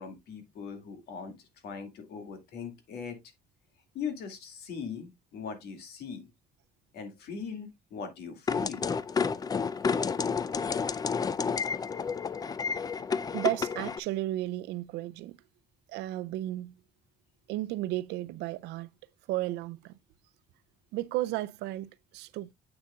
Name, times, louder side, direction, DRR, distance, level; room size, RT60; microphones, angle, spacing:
voice 1, 0.0-3.2 3.9-6.3 6.9-8.9, left 6 dB, 70° left, 2.1 m, -40 dB
sound 1, 8.5-14.0, left 5 dB, 25° left, 0.4 m, -30 dB
voice 2, 13.3-15.4 15.9-16.7 17.5-18.9 19.3-19.9 20.9-22.5, right 16 dB, 85° right, 0.4 m, -33 dB
7.9 x 6.5 x 2.3 m
cardioid pair, 110°, 17 cm